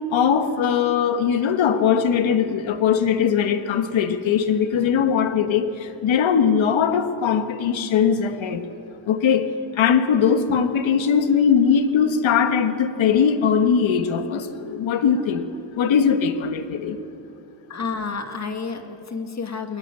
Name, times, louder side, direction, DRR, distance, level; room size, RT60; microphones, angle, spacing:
voice 1, 0.1-8.6 9.1-15.5 15.8-17.0, left 7 dB, 75° left, 9 dB, 1.6 m, -20 dB
voice 2, 17.7-19.8, left 5 dB, 35° left, 6 dB, 2.1 m, -30 dB
22.0 x 19.5 x 9.1 m, 2.8 s
cardioid pair, 135°, 46 cm